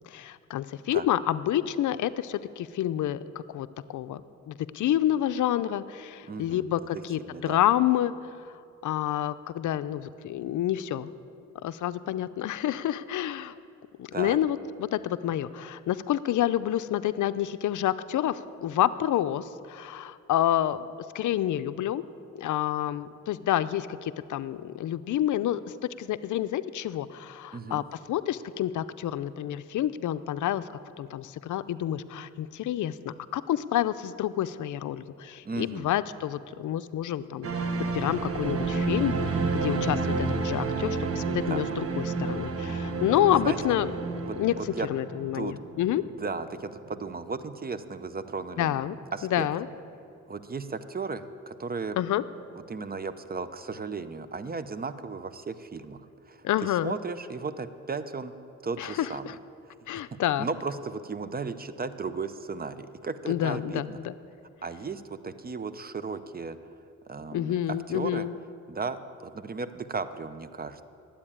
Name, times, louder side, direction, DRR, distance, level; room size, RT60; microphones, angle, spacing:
voice 1, 0.1-3.2 3.5-4.2 4.5-8.1 8.8-11.1 11.6-13.5 14.0-20.9 21.1-22.0 22.4-27.8 28.1-30.6 31.0-43.9 44.4-44.5 44.9-46.0 48.6-49.0 49.2-49.7 52.0-52.2 56.4-57.0 58.8-59.3 59.9-60.5 63.3-64.1 67.3-68.3, left 12 dB, 70° left, 14 dB, 0.5 m, -28 dB
voice 2, 6.3-6.7 7.3-7.6 14.1-14.4 27.5-27.8 35.4-35.9 41.5-41.6 43.4-43.6 44.2-44.9 45.3-45.5 46.2-48.8 49.1-49.5 50.3-52.0 52.7-58.3 58.6-59.2 60.4-64.0 64.6-66.6 67.1-67.6 67.9-68.2 68.7-70.8, right 4 dB, 30° right, 12 dB, 0.7 m, -35 dB
sound 1, 37.4-46.6 46.9-47.0, right 3 dB, 45° right, 1.3 m, -30 dB
12.0 x 8.7 x 8.7 m, 2.6 s
cardioid pair, 75°, 31 cm